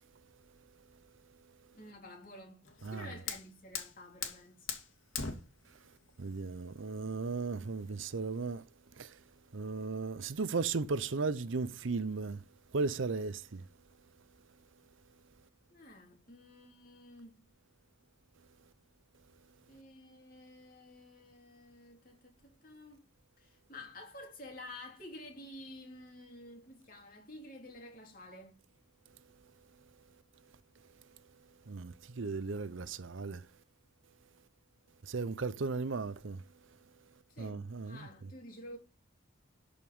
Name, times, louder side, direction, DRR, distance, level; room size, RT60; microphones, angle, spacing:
voice 1, 1.7-4.7 15.7-17.5 19.7-23.0 23.4-28.6 37.3-38.8, left 1 dB, 45° left, 3.6 m, -51 dB
Fire, 2.6-8.6, left 6 dB, 85° left, 2.4 m, -44 dB
voice 2, 2.8-3.2 6.2-8.6 9.0-9.1 9.5-12.4 12.7-13.6 31.7-33.4 35.0-36.4 37.4-38.1, right 4 dB, 75° right, 0.7 m, -36 dB
12.5 x 5.2 x 5.4 m
head